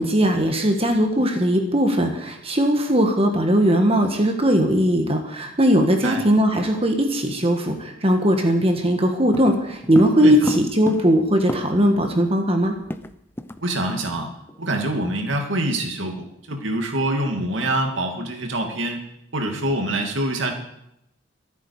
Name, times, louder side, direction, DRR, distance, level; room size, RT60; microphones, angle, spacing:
voice 1, 0.0-12.7, equal, 30° right, 4 dB, 1.5 m, -19 dB
sound 1, 9.3-12.0 12.3-12.4 12.6-13.6 13.9-14.1 14.5-14.7, left 1 dB, 10° left, 0.6 m, -31 dB
voice 2, 13.6-14.3 14.6-19.0 19.3-20.5, right 1 dB, 65° right, 3 dB, 2.6 m, -25 dB
24.5 x 8.4 x 4.9 m, 0.82 s
head